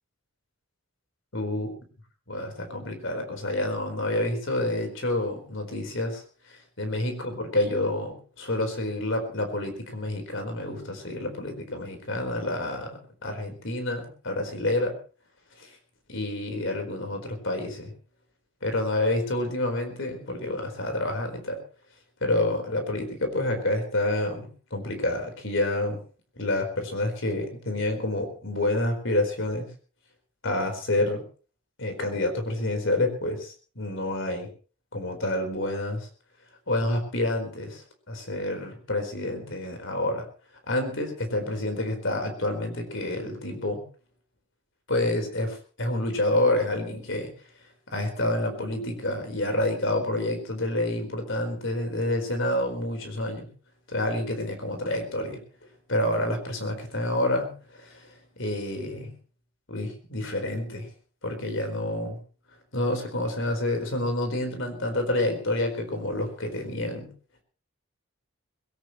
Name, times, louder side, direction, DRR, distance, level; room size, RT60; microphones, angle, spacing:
voice 1, 1.3-1.7 2.3-6.2 6.5-14.9 15.6-15.7 16.1-17.9 18.6-21.6 22.2-26.0 26.4-29.7 30.4-31.2 31.8-34.5 34.9-36.1 36.7-40.3 40.7-43.8 44.9-47.3 47.9-53.5 53.9-55.4 55.9-59.1 59.7-60.9 61.2-62.2 62.7-67.1, left 1 dB, 55° left, 6 dB, 4.3 m, -28 dB
21.5 x 17.0 x 3.1 m, 0.37 s
head